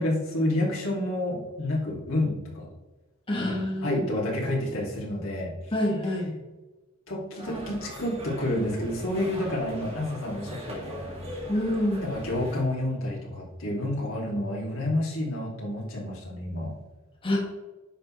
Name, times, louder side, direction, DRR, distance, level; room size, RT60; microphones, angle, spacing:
voice 1, 0.0-2.7 3.3-3.6 3.8-5.5 7.1-11.2 12.0-16.7, left 1 dB, 75° left, -4 dB, 2.6 m, -29 dB
voice 2, 3.3-4.0 5.7-6.3 11.5-12.1 17.2-17.4, left 1 dB, 25° left, -4 dB, 1.7 m, -27 dB
sound 1, 7.4-12.6, equal, 30° right, 2.2 m, -40 dB
10.0 x 6.3 x 3.2 m, 1.1 s
head